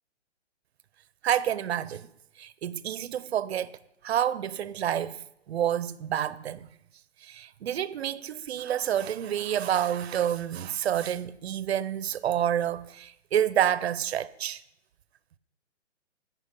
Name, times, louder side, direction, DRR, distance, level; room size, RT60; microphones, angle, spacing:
voice 1, 1.2-2.1 2.4-3.8 4.0-5.2 5.5-6.7 7.2-14.6, right 10 dB, 65° right, 0.7 m, -28 dB
17.0 x 6.0 x 5.3 m
hypercardioid pair, 160°, 35 cm